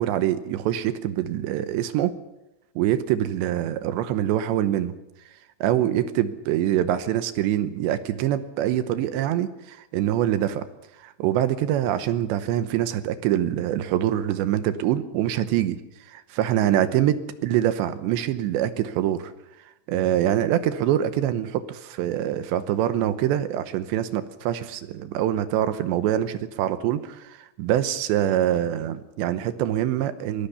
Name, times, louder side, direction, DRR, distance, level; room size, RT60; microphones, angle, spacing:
voice 1, 0.0-2.1 2.8-4.9 5.6-10.7 11.0-19.3 19.9-30.5, right 11 dB, 75° right, 11 dB, 2.8 m, -24 dB
23.5 x 18.0 x 6.8 m, 0.92 s
omnidirectional pair, 5.7 m